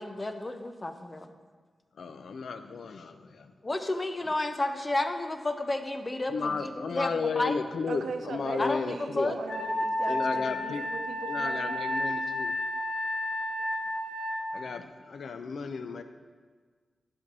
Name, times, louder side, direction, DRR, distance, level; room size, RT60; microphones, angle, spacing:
voice 1, 0.0-1.3 3.6-7.6 8.6-9.7, left 2 dB, 25° left, 7 dB, 0.6 m, -32 dB
voice 2, 2.0-3.5 6.3-9.3 10.1-10.8 11.3-12.5 14.5-16.0, left 5 dB, 75° left, 8 dB, 0.6 m, -33 dB
voice 3, 7.9-11.8, right 4 dB, 85° right, 6 dB, 0.8 m, -39 dB
Wind instrument woodwind instrument, 9.5-14.4, left 1 dB, 45° left, 1.8 m, -31 dB
11.0 x 4.5 x 6.1 m, 1.5 s
wide cardioid pair, 125°, 0 cm